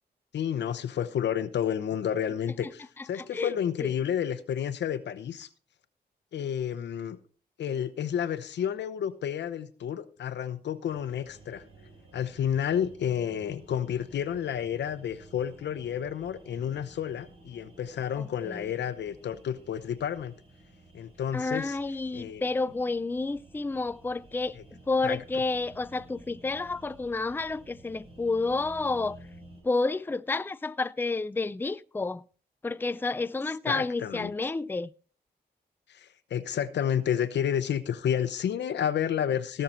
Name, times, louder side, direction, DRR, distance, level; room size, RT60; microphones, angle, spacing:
voice 1, 0.3-5.5 6.3-7.2 7.6-11.6 12.1-20.3 20.9-21.8 22.1-22.4 24.6-24.7 25.0-25.2 33.7-34.3 35.9-39.6, left 9 dB, 85° left, 0.9 m, -30 dB
voice 2, 3.1-3.5 3.8-3.9 18.2-18.6 21.3-24.6 24.9-29.2 29.6-32.2 32.6-34.9, left 3 dB, 10° left, 0.4 m, -30 dB
sound 1, 10.9-29.6, right 2 dB, 30° right, 6.1 m, -53 dB
17.5 x 6.7 x 4.4 m
cardioid pair, 75°, 18 cm